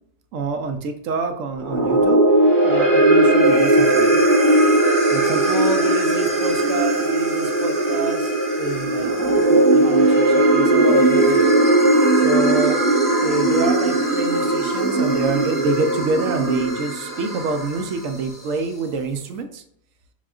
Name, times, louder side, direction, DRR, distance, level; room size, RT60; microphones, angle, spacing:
voice 1, 0.3-2.2 2.6-4.2 5.1-9.1 9.5-11.5 12.1-12.8 13.2-19.6, right 3 dB, 70° right, 6 dB, 0.8 m, -27 dB
sound 1, 1.6-18.0, right 1 dB, 25° left, 0.5 m, -18 dB
6.0 x 2.3 x 2.3 m, 0.73 s
omnidirectional pair, 1.7 m